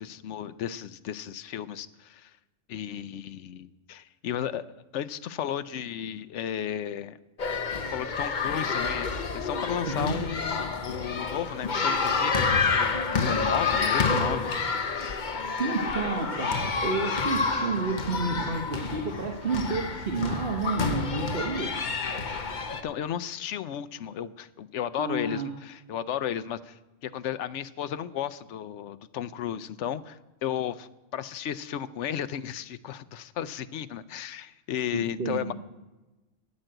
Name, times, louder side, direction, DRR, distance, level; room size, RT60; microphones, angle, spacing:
voice 1, 0.0-2.3 2.7-4.7 4.9-7.2 7.9-14.5 22.8-35.5, left 10 dB, 75° left, 14 dB, 0.9 m, -34 dB
sound 1, 7.4-22.8, left 4 dB, 40° left, 1.0 m, -28 dB
voice 2, 15.6-21.8 25.0-25.5 34.9-35.5, right 3 dB, 50° right, 2 dB, 1.3 m, -30 dB
11.0 x 8.3 x 7.9 m, 1.1 s
omnidirectional pair, 1.3 m